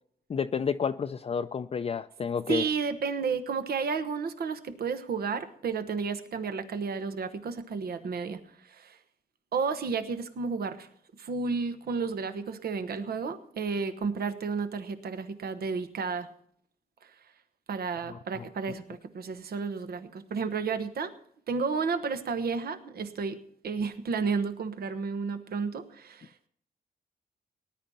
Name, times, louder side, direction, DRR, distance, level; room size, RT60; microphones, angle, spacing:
voice 1, 0.3-2.6, left 6 dB, 40° left, 7 dB, 0.4 m, -30 dB
voice 2, 2.5-9.0 9.5-10.9 11.2-16.3 17.0-17.1 17.7-21.1 21.5-23.4 23.6-26.3, right 5 dB, 75° right, 9 dB, 1.2 m, -32 dB
18.5 x 10.5 x 4.2 m, 0.63 s
cardioid pair, 95°, 16 cm